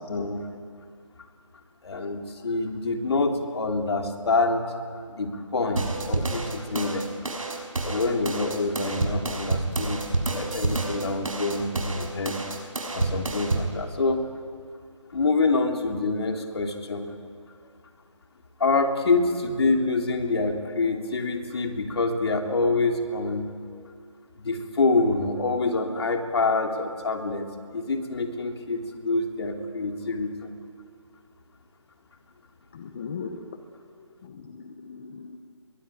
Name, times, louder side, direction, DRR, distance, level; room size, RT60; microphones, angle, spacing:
voice 1, 0.1-0.5 1.8-4.7 5.1-7.1 7.6-10.0 10.3-12.4 12.9-14.2 15.1-17.1 18.6-23.5 24.4-30.5, left 3 dB, 50° left, 3 dB, 3.2 m, -26 dB
sound 1, 5.8-13.7, right 3 dB, 80° right, 5.9 m, -29 dB
voice 2, 32.7-33.3 34.2-35.4, left 6 dB, 20° left, 6 dB, 0.9 m, -38 dB
24.5 x 22.5 x 9.3 m, 2.1 s
figure-of-eight pair, 170°, 17 cm